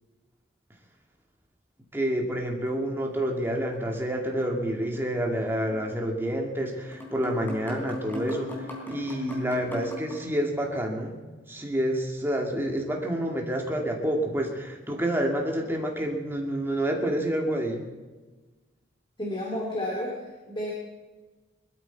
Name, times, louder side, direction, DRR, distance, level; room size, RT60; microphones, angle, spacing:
voice 1, 1.9-11.2 11.5-17.8, right 1 dB, 10° right, 1 dB, 2.2 m, -28 dB
sound 1, 2.7-3.9 4.2-4.3 5.7-5.9 6.5-6.6 6.9-10.2, equal, 10° left, 3.7 m, -38 dB
voice 2, 19.2-20.7, left 1 dB, 25° left, -3 dB, 2.5 m, -31 dB
21.5 x 13.0 x 4.6 m, 1.3 s
head